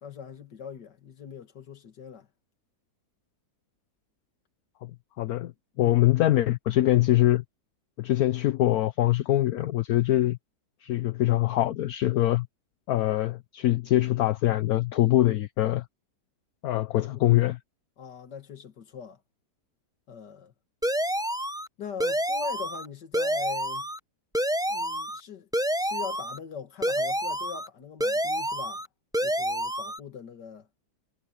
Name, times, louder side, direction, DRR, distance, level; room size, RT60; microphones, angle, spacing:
voice 1, 0.0-2.3 5.8-6.0 17.0-17.5 18.0-19.2 20.1-20.5 21.8-23.9 24.7-25.5 25.8-28.8 29.2-30.7, left 6 dB, 85° left, 2.3 m, -41 dB
voice 2, 5.2-5.5 5.8-7.4 8.0-10.4 10.8-12.5 12.9-15.8 16.6-17.6, left 14 dB, 70° left, 1.1 m, -23 dB
sound 1, 20.8-21.7 22.0-22.8 23.1-24.0 24.3-25.2 25.5-26.4 26.8-27.7 28.0-28.9 29.1-30.0, equal, 5° right, 0.7 m, -28 dB
omnidirectional pair, 1.8 m